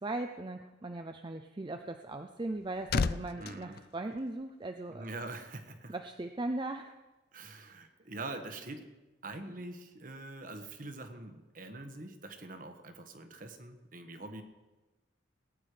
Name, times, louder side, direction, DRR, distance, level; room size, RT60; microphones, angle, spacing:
voice 1, 0.0-5.0 5.9-6.9, right 2 dB, 25° right, 6 dB, 0.4 m, -38 dB
sound 1, 2.2-4.8 5.1-5.4, left 5 dB, 50° left, 0.4 m, -36 dB
voice 2, 3.4-3.8 4.9-5.9 7.3-8.9 9.2-14.4, right 2 dB, 45° right, 7 dB, 1.2 m, -44 dB
18.5 x 9.4 x 5.0 m, 1.1 s
head